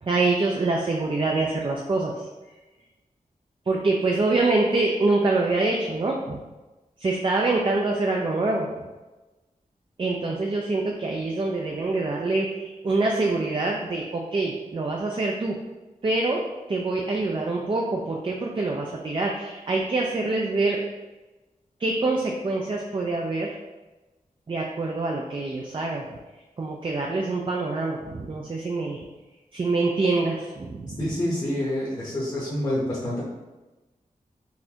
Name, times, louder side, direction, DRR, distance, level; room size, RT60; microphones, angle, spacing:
voice 1, 0.0-2.2 3.7-6.4 7.0-8.8 10.0-15.6 16.0-20.8 21.8-23.5 24.5-26.1 26.6-29.1 29.5-31.1, right 3 dB, 35° right, 0 dB, 0.4 m, -25 dB
voice 2, 31.0-33.2, left 1 dB, 25° left, -7 dB, 0.8 m, -27 dB
4.0 x 2.5 x 2.8 m, 1.1 s
wide cardioid pair, 80°, 15 cm